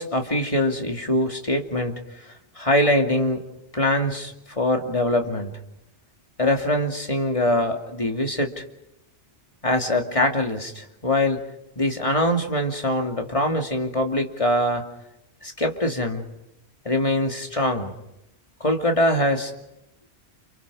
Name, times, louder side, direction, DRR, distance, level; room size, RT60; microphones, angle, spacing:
voice 1, 0.0-2.0 2.6-3.4 3.7-5.5 6.4-8.6 9.6-11.4 11.8-14.9 15.4-16.2 16.8-17.9 18.6-19.5, left 1 dB, 30° left, 3 dB, 2.7 m, -23 dB
29.5 x 28.5 x 4.9 m, 0.86 s
omnidirectional pair, 1.2 m